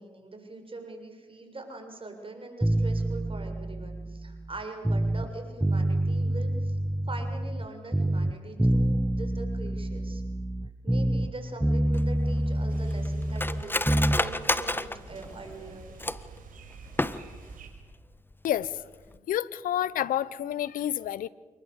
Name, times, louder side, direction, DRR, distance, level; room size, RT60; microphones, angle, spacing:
voice 1, 0.0-6.8 7.1-10.2 10.8-16.0, right 2 dB, 40° right, 7.0 m, -42 dB
sound 1, 2.6-5.3 5.6-7.7 7.9-11.3 11.6-14.2, right 1 dB, 10° right, 1.2 m, -27 dB
Cutlery silverware, 11.9-16.4 16.9-17.6 17.9-18.0 18.3-18.7 19.0-19.2, left 1 dB, 15° left, 1.5 m, -31 dB
sound 2, 12.7-17.7, right 5 dB, 75° right, 4.9 m, -48 dB
voice 2, 19.3-21.3, left 11 dB, 75° left, 0.9 m, -29 dB
27.0 x 20.5 x 8.4 m
hypercardioid pair, 45°, 14 cm